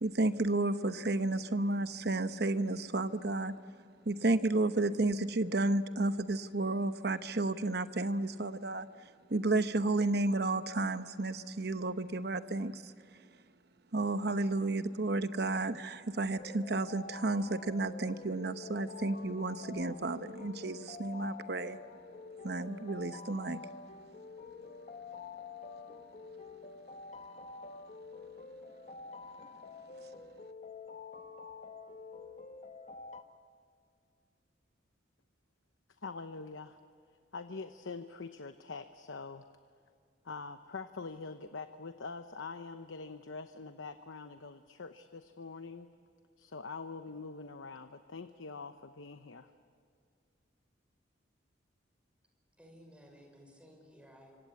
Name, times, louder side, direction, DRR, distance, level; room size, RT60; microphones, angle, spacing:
voice 1, 0.0-3.5 4.1-8.9 9.3-12.8 13.9-21.8 22.4-23.6, right 2 dB, 55° right, 11 dB, 0.9 m, -32 dB
sound 1, 16.4-33.2, left 4 dB, 40° left, 1.2 m, -48 dB
voice 2, 36.0-36.8 37.3-39.5 40.2-45.9 46.4-49.5, left 4 dB, 90° left, 9 dB, 0.9 m, -44 dB
voice 3, 52.6-54.3, equal, 5° right, 1 dB, 5.2 m, -56 dB
26.5 x 25.0 x 8.3 m, 2.2 s
head